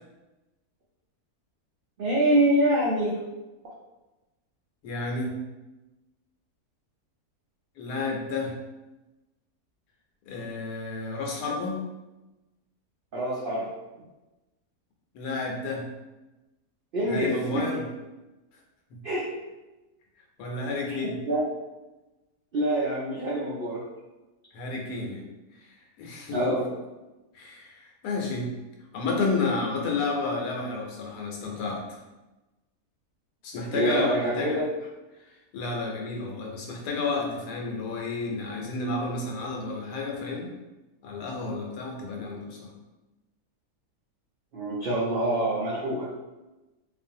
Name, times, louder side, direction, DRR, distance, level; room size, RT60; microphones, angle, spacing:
voice 1, 2.0-3.2 13.1-13.7 16.9-17.8 19.0-19.3 20.9-21.4 22.5-23.8 26.3-26.7 33.7-34.7 44.5-46.1, right 1 dB, 80° right, -7 dB, 0.5 m, -25 dB
voice 2, 4.8-5.4 7.8-8.6 10.3-11.8 15.1-15.8 17.1-17.8 18.9-19.0 20.4-21.2 24.5-25.2 26.0-26.4 27.3-28.5 28.9-31.8 33.4-34.6 35.5-40.5 41.0-42.7, left 3 dB, 85° left, 0 dB, 1.2 m, -31 dB
2.6 x 2.4 x 2.6 m, 1.1 s
omnidirectional pair, 1.6 m